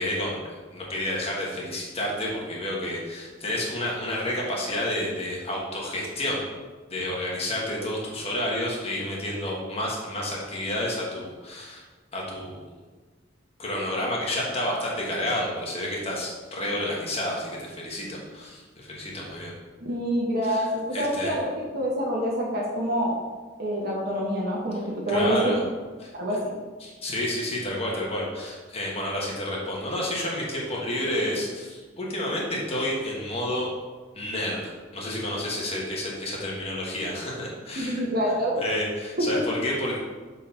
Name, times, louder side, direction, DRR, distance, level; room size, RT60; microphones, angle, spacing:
voice 1, 0.0-6.5 6.9-11.8 12.1-12.7 13.6-19.5 20.4-20.7 20.9-21.3 25.1-25.6 26.0-26.1 26.8-33.7 34.1-38.0 38.3-40.0, left 1 dB, 35° left, -3 dB, 1.5 m, -30 dB
voice 2, 19.8-23.1 23.6-24.8 25.0-25.5 26.1-26.4 37.8-38.6 39.2-39.4, equal, 55° right, -4 dB, 1.3 m, -26 dB
6.5 x 4.1 x 4.3 m, 1.4 s
head